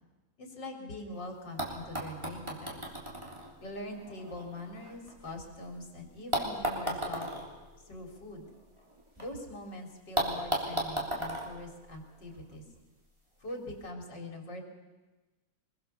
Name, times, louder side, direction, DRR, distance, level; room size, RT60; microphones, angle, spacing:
voice 1, 0.4-2.8 3.6-7.3 7.9-8.5 9.2-12.6 13.4-14.6, left 1 dB, 75° left, 2 dB, 4.0 m, -43 dB
sound 1, 1.1-1.2 1.6-5.7 6.3-9.3 9.6-9.7 10.2-12.5 13.5-13.6, right 1 dB, 15° right, 3.3 m, -36 dB
24.0 x 21.5 x 6.9 m, 1.2 s
omnidirectional pair, 2.0 m